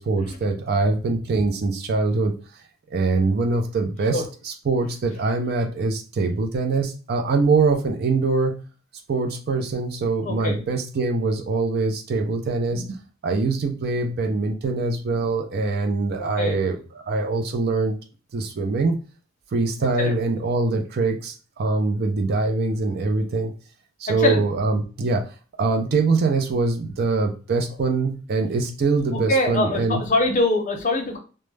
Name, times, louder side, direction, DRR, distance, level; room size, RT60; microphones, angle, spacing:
voice 1, 0.0-2.4 2.9-8.6 9.1-18.0 18.3-19.0 19.5-23.5 24.0-25.3 25.6-30.0, right 3 dB, 50° right, 4 dB, 0.4 m, -23 dB
voice 2, 10.2-10.6 16.4-16.6 20.0-20.2 24.2-24.4 29.1-31.2, left 2 dB, 40° left, 3 dB, 0.6 m, -23 dB
2.2 x 2.0 x 3.2 m, 0.36 s
head